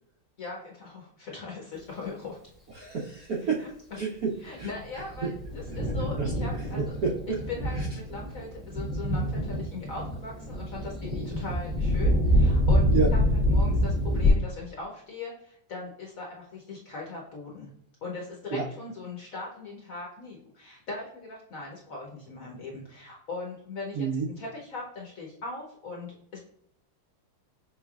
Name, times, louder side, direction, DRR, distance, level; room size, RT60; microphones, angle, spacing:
voice 1, 0.4-2.4 3.6-3.7 4.4-6.8 7.5-12.9 13.5-17.7 18.0-26.4, left 3 dB, 60° left, -2 dB, 0.9 m, -39 dB
voice 2, 2.7-3.7 3.9-4.7 5.2-5.3 5.7-5.8 6.2-6.3 6.7-7.4 7.7-7.9 12.9-13.1 18.5-18.7 23.9-24.3, right 5 dB, 70° right, -2 dB, 0.8 m, -29 dB
Thunder, 4.6-14.3, equal, ahead, 0.6 m, -26 dB
5.5 x 3.2 x 2.3 m, 0.69 s
omnidirectional pair, 2.3 m